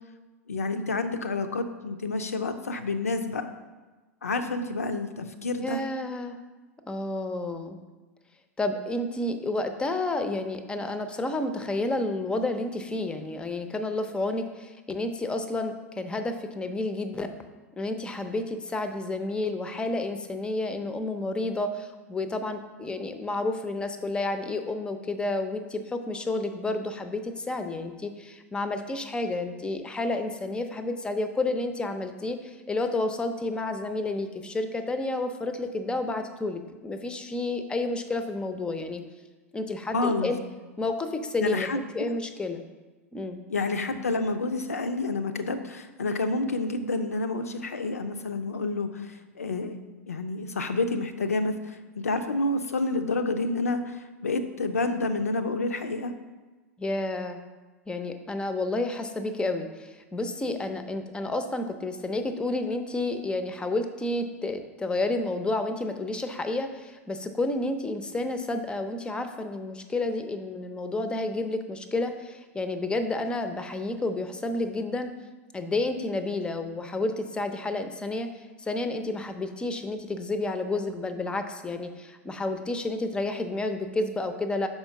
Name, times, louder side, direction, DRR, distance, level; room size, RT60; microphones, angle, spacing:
voice 1, 0.5-3.4 4.2-5.8 39.9-40.3 41.4-42.2 43.5-49.8 50.1-56.1, left 3 dB, 75° left, 8 dB, 0.5 m, -29 dB
voice 2, 5.6-6.4 6.9-7.8 8.6-17.3 17.8-39.0 39.5-40.4 40.8-41.7 41.9-42.6 43.1-43.4 56.8-57.4 57.9-75.1 75.5-84.7, left 2 dB, 10° left, 8 dB, 0.5 m, -30 dB
5.6 x 4.4 x 5.7 m, 1.2 s
figure-of-eight pair, 90°, 8 cm